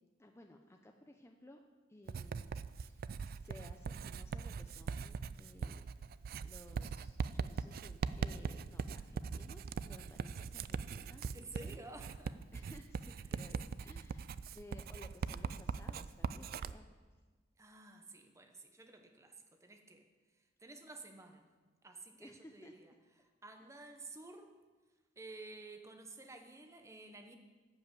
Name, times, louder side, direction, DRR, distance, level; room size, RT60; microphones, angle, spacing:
voice 1, 0.2-1.6 1.9-3.1 3.4-5.9 6.4-11.8 12.5-16.9 22.2-22.7 23.2-23.3 23.6-23.7, left 1 dB, 15° left, 3 dB, 0.6 m, -58 dB
Writing, 2.1-16.7, right 5 dB, 50° right, 0.3 m, -41 dB
voice 2, 11.3-12.4 13.3-13.4 17.6-20.1 20.3-21.5 21.8-22.9 23.2-24.5 25.2-27.4, right 2 dB, 15° right, 5 dB, 1.0 m, -53 dB
12.0 x 5.7 x 8.1 m, 1.3 s
head